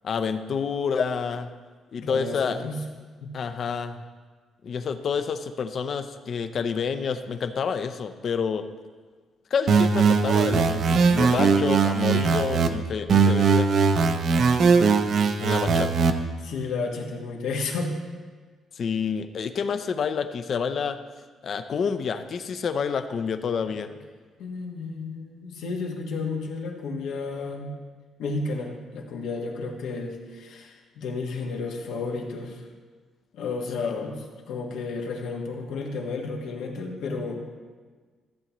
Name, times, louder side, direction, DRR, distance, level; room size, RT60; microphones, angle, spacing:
voice 1, 0.0-1.5 1.9-2.6 3.3-4.0 4.6-8.6 9.5-13.7 15.4-16.1 18.7-21.0 21.4-23.9 33.8-34.1, left 6 dB, 45° left, 10 dB, 0.5 m, -28 dB
voice 2, 2.0-2.8 3.2-3.3 16.4-18.0 24.4-27.7 28.2-32.6 33.3-37.4, left 3 dB, 90° left, 0 dB, 1.5 m, -32 dB
sound 1, 9.7-12.7 13.1-16.1, right 5 dB, 50° right, 0.6 m, -20 dB
14.0 x 8.3 x 3.0 m, 1.5 s
cardioid pair, 150°, 0 cm